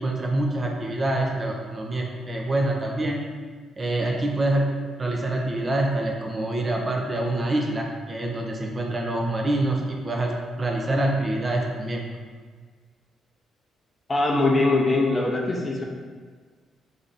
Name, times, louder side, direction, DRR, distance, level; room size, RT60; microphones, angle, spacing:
voice 1, 0.0-3.2 3.8-4.7 5.0-10.3 10.6-12.0, right 1 dB, 30° right, 0 dB, 0.5 m, -26 dB
voice 2, 14.1-15.8, left 2 dB, 25° left, -1 dB, 0.6 m, -22 dB
3.3 x 2.6 x 3.9 m, 1.6 s
cardioid pair, 90°, 0 cm